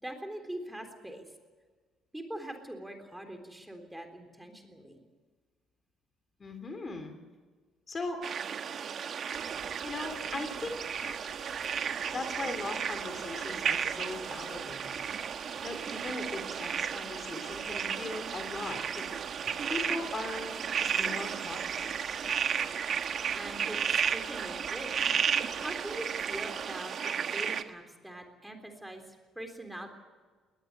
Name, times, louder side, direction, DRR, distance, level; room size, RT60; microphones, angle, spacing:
voice 1, 0.0-1.3 2.1-5.0 23.3-29.9, right 1 dB, 5° right, 5 dB, 3.7 m, -43 dB
voice 2, 6.4-7.1 7.9-8.2 9.8-11.3 12.1-15.1 15.6-19.1 19.7-21.9, left 3 dB, 25° left, 7 dB, 3.1 m, -39 dB
sound 1, 8.2-27.6, right 7 dB, 45° right, 1.3 m, -33 dB
sound 2, 9.3-26.7, left 5 dB, 50° left, 7.5 m, -57 dB
21.0 x 19.0 x 8.0 m, 1.5 s
cardioid pair, 125°, 0 cm